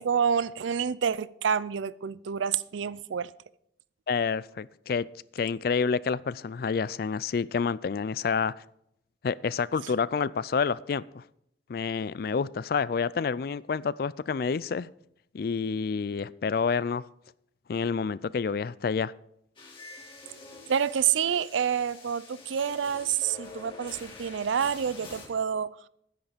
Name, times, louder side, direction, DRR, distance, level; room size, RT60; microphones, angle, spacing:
voice 1, 0.0-3.3 20.7-25.7, right 7 dB, 90° right, 0.4 m, -28 dB
voice 2, 4.1-5.1 5.3-8.5 9.2-11.2 11.7-14.9 15.3-17.0 17.7-19.1, left 5 dB, 55° left, 0.3 m, -28 dB
sound 1, 19.6-25.3, left 3 dB, 30° left, 2.3 m, -46 dB
10.0 x 9.6 x 5.1 m
head